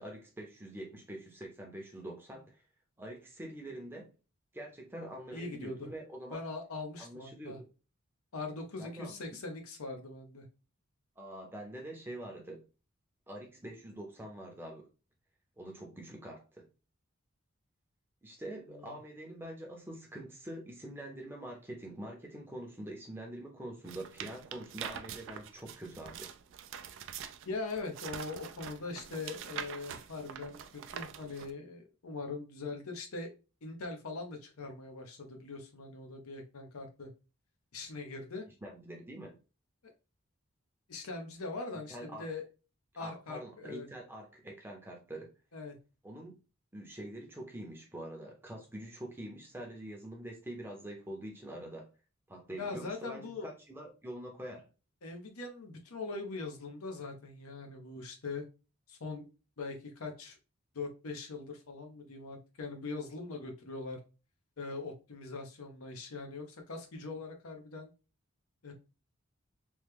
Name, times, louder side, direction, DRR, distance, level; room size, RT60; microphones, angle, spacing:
voice 1, 0.0-2.6 3.0-4.1 4.5-6.4 7.0-7.6 8.8-9.2 11.2-12.6 13.3-14.9 15.6-16.7 18.2-26.3 38.6-39.4 41.7-42.3 43.0-45.3 46.0-46.3 46.7-51.9 52.3-54.7, right 1 dB, 10° right, 1 dB, 0.6 m, -45 dB
voice 2, 5.3-5.9 6.3-7.6 8.3-10.5 18.7-19.0 27.5-33.3 33.6-37.1 37.7-38.4 40.9-42.4 43.0-43.9 45.5-45.8 52.6-53.5 55.0-58.4 58.9-59.3 59.6-60.4 60.7-64.0 64.6-67.9 68.6-68.7, left 3 dB, 85° left, 4 dB, 0.7 m, -41 dB
sound 1, 23.8-31.5, right 8 dB, 60° right, 0.3 m, -45 dB
3.1 x 2.1 x 3.3 m, 0.32 s
head